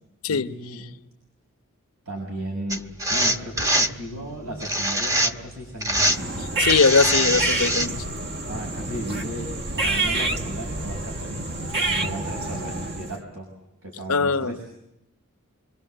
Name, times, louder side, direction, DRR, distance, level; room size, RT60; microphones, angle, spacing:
voice 1, 0.3-0.9 2.0-6.3 8.5-11.4 11.8-13.5 13.8-14.6, right 1 dB, 85° right, 6.6 m, -35 dB
sound 1, 2.7-3.9 4.6-5.5 5.8-6.2 6.7-7.9, right 1 dB, 15° right, 1.0 m, -23 dB
sound 2, 6.0-13.2, right 2 dB, 50° right, 1.4 m, -28 dB
voice 2, 6.6-8.0 14.1-14.6, left 4 dB, 70° left, 0.9 m, -21 dB
26.5 x 24.0 x 7.9 m
head